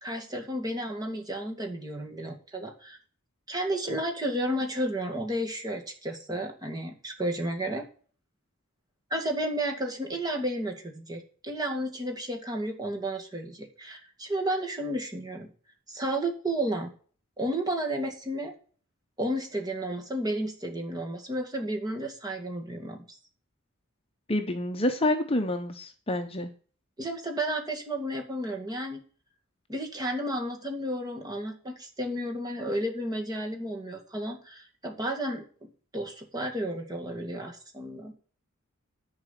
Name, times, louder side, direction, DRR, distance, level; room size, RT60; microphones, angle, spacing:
voice 1, 0.0-3.0 3.5-7.8 9.1-15.5 15.9-16.9 17.4-18.5 19.2-23.0 27.0-29.0 29.7-35.4 35.9-38.1, right 1 dB, 20° right, 2 dB, 2.2 m, -32 dB
voice 2, 24.3-26.5, left 1 dB, 25° left, 5 dB, 0.9 m, -28 dB
10.5 x 4.9 x 7.4 m, 0.41 s
head